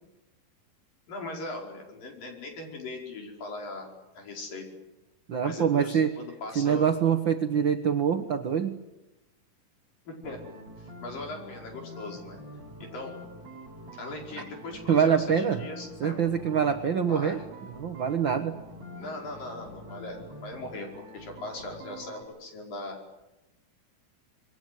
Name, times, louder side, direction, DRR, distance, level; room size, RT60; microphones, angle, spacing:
voice 1, 1.1-3.9 4.1-4.6 5.4-6.9 10.1-12.4 12.8-13.1 13.9-15.3 15.6-16.2 17.1-17.5 19.0-20.9 21.1-23.0, left 2 dB, 65° left, 1 dB, 6.9 m, -39 dB
voice 2, 5.3-6.2 6.5-8.8 14.4-14.5 14.9-15.6 16.0-17.4 17.8-18.6, right 7 dB, 70° right, 7 dB, 1.1 m, -25 dB
sound 1, 10.2-22.2, equal, 45° right, 7.9 m, -45 dB
27.0 x 22.0 x 9.5 m, 0.99 s
omnidirectional pair, 4.2 m